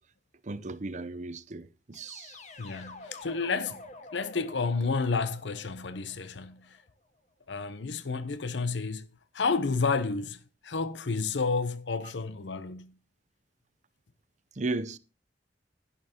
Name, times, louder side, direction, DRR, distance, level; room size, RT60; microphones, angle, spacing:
voice 1, 0.4-2.4 14.6-15.0, right 3 dB, 40° right, 0.6 m, -35 dB
sound 1, 1.9-6.9, left 2 dB, 40° left, 1.4 m, -48 dB
voice 2, 2.6-6.8 7.5-9.1 9.3-12.9, left 4 dB, 90° left, 0.8 m, -31 dB
11.0 x 11.0 x 2.9 m
head